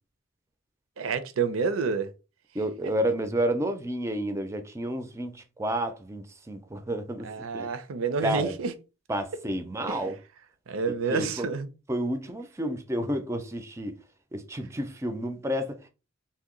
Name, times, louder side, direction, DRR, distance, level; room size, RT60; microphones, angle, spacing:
voice 1, 1.0-2.1 2.8-2.9 7.2-8.7 9.9-10.1 10.7-11.7, right 5 dB, 75° right, 0.5 m, -29 dB
voice 2, 2.5-7.7 8.2-8.5 9.1-10.1 11.1-11.5 11.9-14.0 14.3-15.9, right 1 dB, 15° right, 0.3 m, -30 dB
2.8 x 2.1 x 3.7 m
head